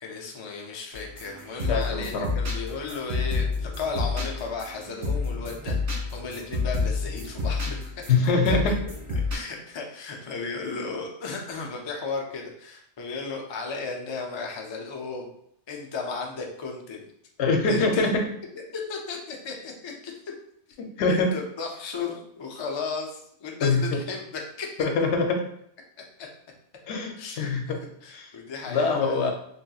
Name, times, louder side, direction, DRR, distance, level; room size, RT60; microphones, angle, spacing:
voice 1, 0.0-5.8 6.1-7.9 8.5-8.7 9.3-15.3 15.7-17.1 17.7-18.1 18.5-20.1 21.1-24.7 26.2-26.3 27.2-27.5 28.0-29.3, left 4 dB, 50° left, 1 dB, 0.3 m, -35 dB
sound 1, 0.9-9.4, left 3 dB, 85° right, 1.6 m, -29 dB
voice 2, 1.7-2.3 8.1-8.7 17.4-18.3 21.0-21.3 23.6-23.8 24.8-25.4 26.8-27.8 28.1-28.3 28.7-29.3, left 3 dB, 80° left, 3 dB, 0.9 m, -23 dB
3.1 x 2.7 x 2.3 m, 0.71 s
omnidirectional pair, 1.1 m